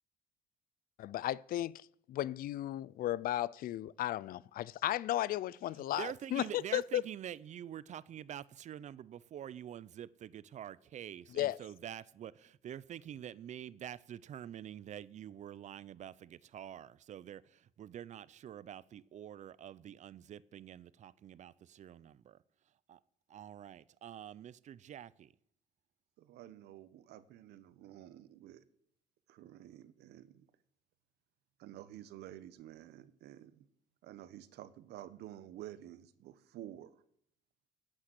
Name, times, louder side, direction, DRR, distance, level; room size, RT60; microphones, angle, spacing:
voice 1, 1.0-1.8 2.1-7.0 11.3-11.6, left 13 dB, 60° left, 0.4 m, -35 dB
voice 2, 6.0-22.4 22.9-23.0 23.3-25.3, right 10 dB, 45° right, 0.5 m, -47 dB
voice 3, 26.2-28.6 29.3-30.5 31.6-33.7 34.0-36.9, right 12 dB, 80° right, 1.0 m, -51 dB
10.0 x 8.8 x 7.7 m
cardioid pair, 110°, 17 cm